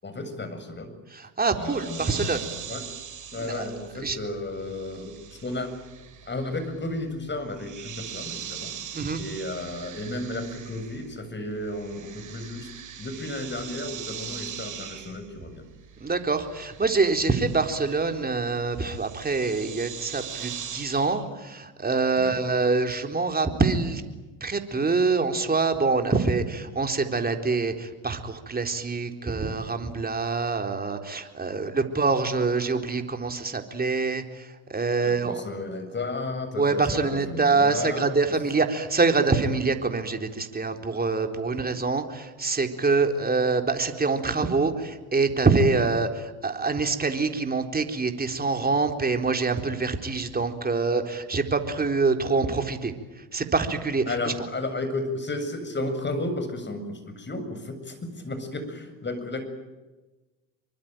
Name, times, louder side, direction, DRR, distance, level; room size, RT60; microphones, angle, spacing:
voice 1, 0.0-0.9 1.6-2.4 2.7-2.8 3.3-5.7 6.2-12.7 13.0-15.6 22.2-22.4 31.5-31.6 35.0-38.3 54.1-59.4, left 2 dB, 25° left, 9 dB, 7.4 m, -33 dB
voice 2, 1.1-2.5 3.4-3.7 4.0-4.2 8.9-9.2 16.0-24.0 24.4-34.4 34.7-35.4 36.6-52.9 53.3-54.3, right 4 dB, 20° right, 5 dB, 4.1 m, -25 dB
sound 1, 1.5-11.3 11.5-21.2, right 8 dB, 40° right, 6.5 m, -41 dB
26.5 x 24.0 x 9.2 m, 1.2 s
hypercardioid pair, 75°, 45 cm